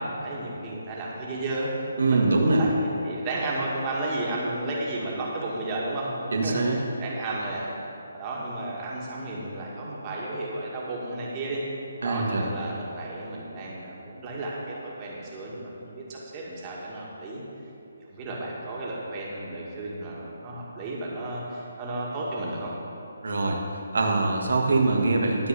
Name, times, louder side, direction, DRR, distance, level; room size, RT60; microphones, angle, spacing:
voice 1, 0.0-1.7 2.0-6.1 6.4-7.7 8.1-11.6 12.0-17.4 17.9-22.7, right 2 dB, 25° right, -5 dB, 2.0 m, -33 dB
voice 2, 2.0-2.6 6.3-6.8 12.0-12.5 23.2-23.6 23.9-25.5, right 3 dB, 65° right, 0 dB, 1.7 m, -23 dB
12.5 x 4.7 x 8.2 m, 2.8 s
figure-of-eight pair, 145°, 0 cm